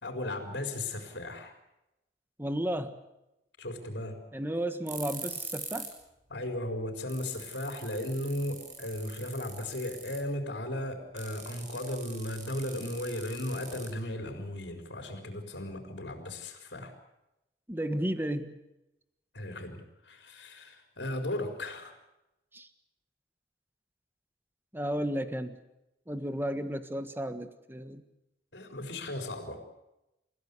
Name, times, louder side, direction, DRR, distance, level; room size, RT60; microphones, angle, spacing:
voice 1, 0.0-1.5 3.6-4.2 6.3-16.9 19.3-21.9 28.5-29.6, left 1 dB, 85° left, 3 dB, 4.3 m, -36 dB
voice 2, 2.4-3.0 4.3-5.9 17.7-18.6 22.5-22.7 24.7-25.6 26.1-28.0, right 1 dB, 15° right, 9 dB, 1.5 m, -33 dB
sound 1, 4.9-6.0 6.3-6.4 6.8-6.9 7.1-10.3 11.2-14.3, right 5 dB, 45° right, 7.3 m, -43 dB
29.0 x 16.0 x 8.3 m, 0.91 s
head